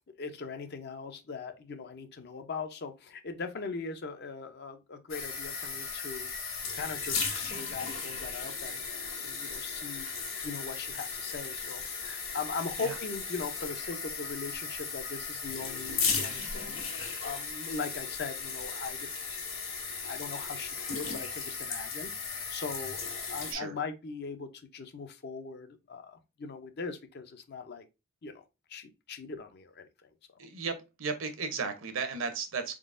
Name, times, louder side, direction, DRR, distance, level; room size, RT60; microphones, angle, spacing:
voice 1, 0.2-19.1 20.0-27.9 28.2-28.4 28.7-30.1, left 4 dB, 50° left, 0.5 m, -40 dB
sound 1, 5.1-23.5, left 5 dB, 65° left, 1.5 m, -36 dB
voice 2, 30.4-32.8, right 5 dB, 65° right, 0.8 m, -35 dB
4.1 x 3.7 x 2.5 m
head